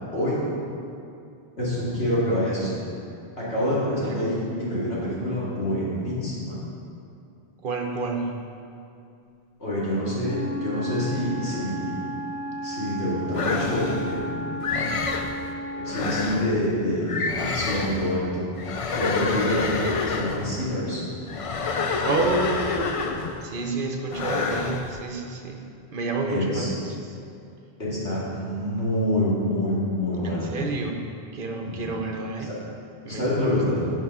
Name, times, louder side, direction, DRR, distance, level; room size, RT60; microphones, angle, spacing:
voice 1, 0.1-0.5 1.6-2.8 3.4-6.6 9.6-12.0 12.6-14.7 15.8-18.4 18.9-21.0 26.3-26.7 27.8-30.5 31.6-31.8 33.1-33.9, left 1 dB, 70° left, -8 dB, 2.6 m, -26 dB
voice 2, 7.6-8.3 22.0-23.0 23.4-25.6 25.9-27.1 30.2-31.0 31.3-32.6 33.0-33.3, right 3 dB, 60° right, 2 dB, 0.9 m, -29 dB
Wind instrument woodwind instrument, 10.2-16.2, right 1 dB, 15° right, 1.2 m, -34 dB
sound 1, 13.3-14.1 14.6-15.3 15.9-16.5 17.1-18.0 18.6-20.5 21.3-23.4 24.1-24.9, left 4 dB, 45° left, 0.4 m, -27 dB
8.2 x 5.5 x 5.4 m, 2.6 s
omnidirectional pair, 1.1 m